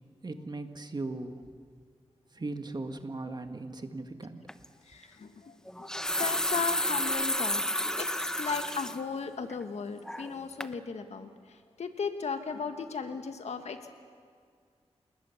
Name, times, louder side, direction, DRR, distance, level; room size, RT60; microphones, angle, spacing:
voice 1, 0.2-1.4 2.3-4.5, right 2 dB, 40° right, 7 dB, 1.8 m, -38 dB
sound 1, 4.5-4.7 5.7-9.0 9.4-9.5 10.0-10.4 10.6-10.7, left 1 dB, 5° left, 0.9 m, -31 dB
voice 2, 4.8-7.6 8.0-13.9, left 5 dB, 85° left, 7 dB, 1.7 m, -36 dB
28.5 x 19.5 x 7.3 m, 2.1 s
wide cardioid pair, 95°, 11 cm